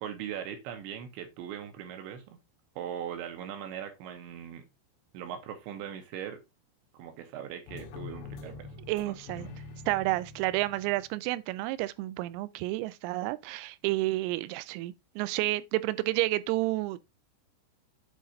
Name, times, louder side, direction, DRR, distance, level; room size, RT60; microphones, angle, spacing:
voice 1, 0.0-2.4 2.8-4.6 5.1-6.4 6.9-8.7 9.1-9.6, right 9 dB, 75° right, 3.1 m, -40 dB
sound 1, 7.7-11.3, left 5 dB, 85° left, 3.8 m, -45 dB
voice 2, 8.9-9.5 9.9-17.1, right 18 dB, 90° right, 3.3 m, -30 dB
8.8 x 4.0 x 3.8 m
omnidirectional pair, 6.0 m